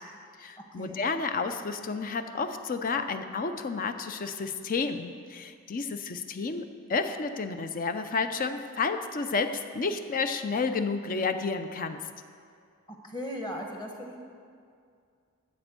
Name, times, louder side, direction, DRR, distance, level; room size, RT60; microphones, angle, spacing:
voice 1, 0.4-12.0, left 4 dB, 40° left, 9 dB, 0.5 m, -31 dB
voice 2, 12.9-14.2, equal, 20° left, 2 dB, 1.2 m, -37 dB
13.0 x 4.4 x 7.5 m, 2.3 s
head